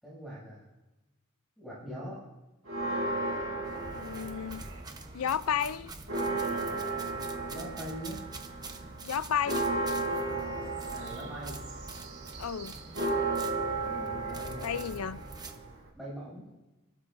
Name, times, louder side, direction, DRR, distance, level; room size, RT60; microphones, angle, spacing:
voice 1, 0.0-0.6 1.6-2.2 7.5-8.2 10.9-11.6 13.8-14.7 15.9-16.4, equal, ahead, 6.6 m, -42 dB
Church bell, 2.7-5.0 5.4-5.5 5.8-15.9, right 2 dB, 70° right, 4.2 m, -34 dB
sound 1, 3.6-15.6, right 3 dB, 20° right, 0.9 m, -46 dB
voice 2, 3.9-4.6 5.1-5.9 9.0-9.6 12.4-12.7 14.6-15.2, left 8 dB, 90° left, 0.4 m, -32 dB
29.5 x 12.5 x 2.6 m
head